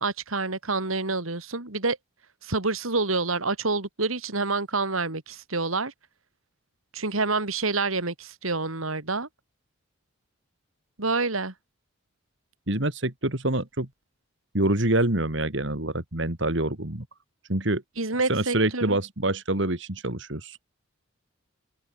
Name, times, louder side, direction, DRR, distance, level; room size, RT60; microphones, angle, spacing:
voice 1, 0.0-2.0 2.4-5.9 6.9-9.3 11.0-11.5 18.0-19.0, right 3 dB, 90° right, 3.2 m, -27 dB
voice 2, 12.7-13.9 14.5-17.1 17.5-17.8 18.3-20.6, right 1 dB, 60° right, 2.8 m, -26 dB
head